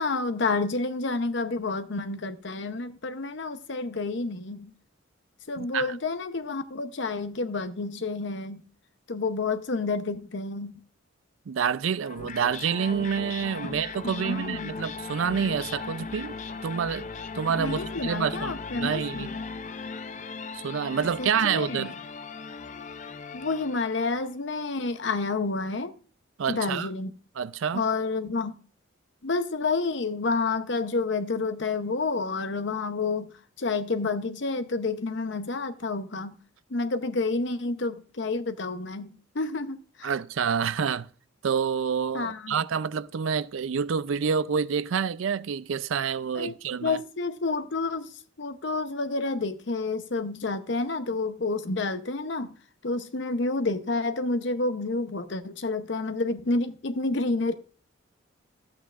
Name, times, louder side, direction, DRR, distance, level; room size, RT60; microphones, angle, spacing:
voice 1, 0.0-4.7 5.5-8.6 9.1-10.8 14.0-14.8 17.6-19.3 21.2-21.9 23.3-25.9 26.5-27.1 27.7-28.6 29.2-36.4 36.7-40.1 42.1-42.6 46.3-52.5 52.8-57.5, left 3 dB, 60° left, 0.8 m, -29 dB
voice 2, 5.6-5.9 11.5-16.4 16.6-17.1 17.3-19.3 20.5-21.9 26.4-26.9 27.4-27.8 40.0-41.1 41.4-47.0, right 6 dB, 75° right, 0.4 m, -28 dB
sound 1, 12.0-24.2, left 4 dB, 35° left, 0.4 m, -38 dB
12.5 x 8.5 x 2.4 m
head